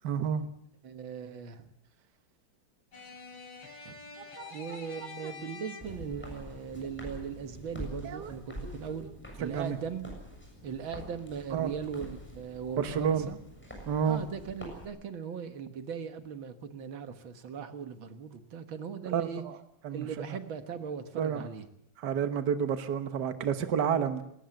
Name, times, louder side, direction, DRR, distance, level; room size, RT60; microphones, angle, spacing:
voice 1, 0.0-0.5 4.4-4.8 5.2-5.3 8.0-8.8 9.4-9.8 11.5-11.7 12.8-13.3 13.9-14.2 19.1-19.6 19.8-20.4 21.2-21.5 22.0-24.2, right 7 dB, 60° right, 9 dB, 1.8 m, -30 dB
voice 2, 0.8-1.7 3.9-4.0 4.5-9.1 9.4-10.1 10.6-13.4 14.0-19.4 19.9-21.7, right 7 dB, 90° right, 8 dB, 2.3 m, -39 dB
sound 1, 2.9-6.2, left 5 dB, 85° left, 5.7 m, -47 dB
Walk footsteps, 5.8-14.9, equal, 5° left, 7.1 m, -46 dB
20.0 x 19.5 x 7.8 m, 0.74 s
omnidirectional pair, 2.1 m